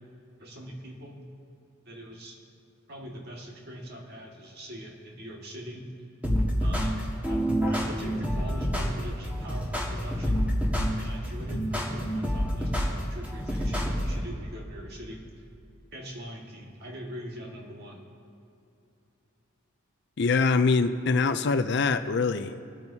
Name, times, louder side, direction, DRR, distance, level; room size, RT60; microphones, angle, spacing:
voice 1, 0.4-1.2 1.9-2.4 2.9-5.9 6.6-10.6 11.0-15.2 15.9-18.0, equal, 50° right, 0 dB, 1.8 m, -42 dB
sound 1, 6.2-14.2, equal, 5° right, 1.7 m, -28 dB
voice 2, 20.2-22.6, left 4 dB, 55° left, 10 dB, 0.5 m, -24 dB
22.0 x 8.8 x 2.8 m, 2.7 s
head